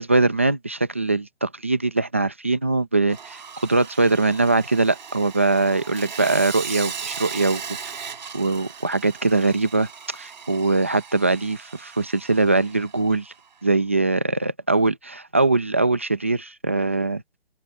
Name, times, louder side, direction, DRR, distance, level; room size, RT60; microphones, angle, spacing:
voice 1, 0.0-7.8 8.3-13.3 13.6-17.2, right 2 dB, 15° right, 0.6 m, -22 dB
Sawing, 3.1-13.3, right 6 dB, 45° right, 6.5 m, -37 dB
open air
hypercardioid pair, 175°, 31 cm